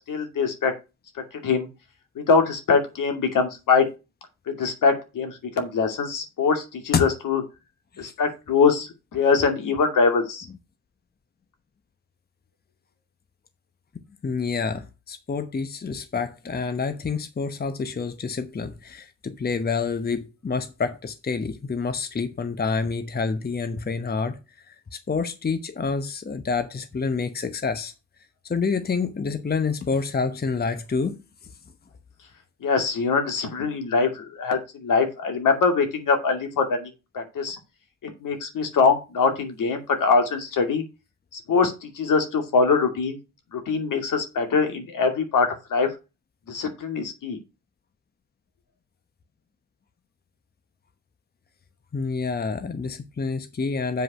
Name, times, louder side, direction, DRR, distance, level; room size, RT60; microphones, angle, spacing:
voice 1, 0.1-0.7 1.3-1.7 2.3-3.9 4.5-7.4 8.0-10.5 32.6-37.6 38.2-40.8 41.3-43.2 43.5-45.9 46.5-47.4, left 5 dB, 60° left, 2.6 m, -23 dB
voice 2, 14.2-24.4 24.7-27.9 28.5-31.2 51.9-54.0, left 4 dB, 25° left, 1.1 m, -28 dB
8.0 x 5.0 x 6.3 m
hypercardioid pair, 55°, 35 cm